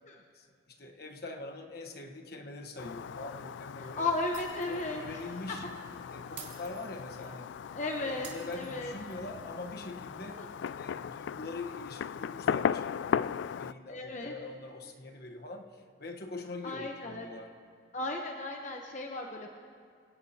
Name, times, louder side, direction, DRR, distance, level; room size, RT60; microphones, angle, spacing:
voice 1, 0.3-4.1 4.7-5.6 6.1-7.5 8.0-10.4 10.7-13.3 13.6-17.5, left 2 dB, 55° left, 3 dB, 1.2 m, -43 dB
Fireworks, 2.8-13.7, left 7 dB, 80° left, 0.3 m, -37 dB
voice 2, 3.8-5.0 5.5-5.6 7.7-8.3 8.5-8.9 10.4-10.5 13.9-14.3 16.6-17.3 17.9-19.5, left 2 dB, 40° left, 1 dB, 0.9 m, -35 dB
Shatter, 4.3-4.9 5.2-5.4 6.4-7.4 8.2-9.3, right 8 dB, 70° right, 2.2 m, -49 dB
26.5 x 17.5 x 2.9 m, 2.2 s
head